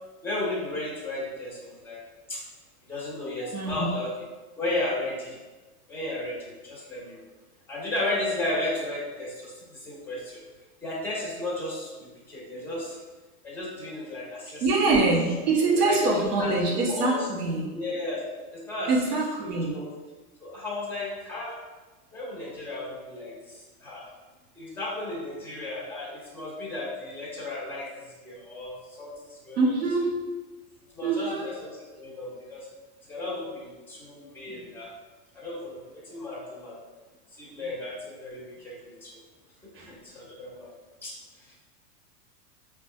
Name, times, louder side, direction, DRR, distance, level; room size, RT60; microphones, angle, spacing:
voice 1, 0.2-2.0 2.3-2.4 2.9-4.1 4.6-5.4 5.9-7.3 7.7-10.4 10.8-13.0 13.4-15.1 15.7-16.5 16.9-17.3 17.7-18.2 18.5-19.2 19.5-19.9 20.4-21.6 22.1-24.1 24.6-29.7 30.9-32.7 33.1-34.9 35.3-36.8 37.3-39.2 39.7-40.7 41.0-41.5, left 2 dB, 5° left, -6 dB, 1.3 m, -34 dB
voice 2, 3.5-3.9 14.6-17.7 18.9-19.7 29.6-30.2 31.0-31.4 39.8-39.9, right 3 dB, 90° right, -2 dB, 1.0 m, -24 dB
4.4 x 2.4 x 2.3 m, 1.3 s
supercardioid pair, 130°, 45 cm